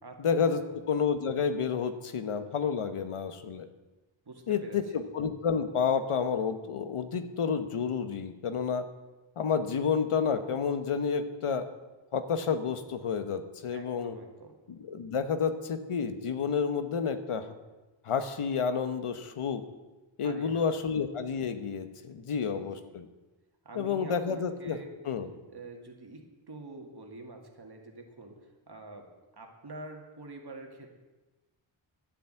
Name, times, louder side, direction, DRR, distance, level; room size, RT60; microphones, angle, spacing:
voice 1, 0.2-3.7 4.5-8.8 9.4-11.7 12.1-14.2 14.7-17.5 18.0-19.6 20.2-23.1 23.8-24.8 25.1-25.3, left 6 dB, 85° left, 10 dB, 1.2 m, -30 dB
voice 2, 4.3-5.0 13.7-14.6 20.2-20.6 22.5-22.7 23.6-24.9 25.5-30.9, right 2 dB, 50° right, 3 dB, 2.3 m, -46 dB
11.5 x 7.1 x 8.9 m, 1.1 s
wide cardioid pair, 100°, 50 cm